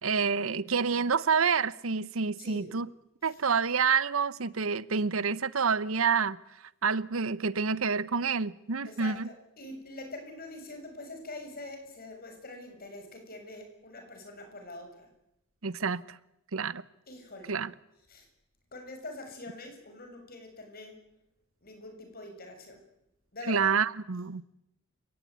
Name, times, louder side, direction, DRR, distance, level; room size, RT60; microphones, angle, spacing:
voice 1, 0.0-2.9 3.2-6.4 6.8-9.3 15.6-16.2 16.5-16.8 17.5-17.7 23.5-24.4, right 5 dB, 80° right, 0.9 m, -28 dB
voice 2, 2.4-2.7 8.8-15.1 17.1-17.6 18.1-18.3 18.7-21.0 21.6-22.8 23.3-23.7, left 2 dB, 45° left, 6.7 m, -44 dB
29.5 x 17.5 x 9.4 m
head